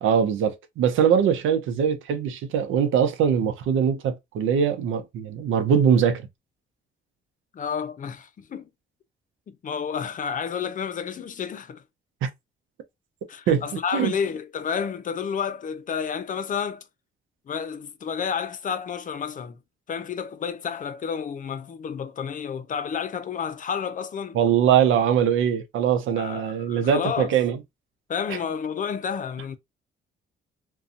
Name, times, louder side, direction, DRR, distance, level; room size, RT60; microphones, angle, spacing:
voice 1, 0.0-6.3 13.5-13.6 13.9-14.1 24.3-27.6 28.3-28.4, right 8 dB, 80° right, 0.6 m, -22 dB
voice 2, 7.5-8.7 9.5-11.8 13.3-16.8 17.5-19.6 19.9-24.4 26.2-27.3 28.1-29.6, left 7 dB, 40° left, 0.5 m, -30 dB
2.6 x 2.3 x 2.5 m
cardioid pair, 90°, 20 cm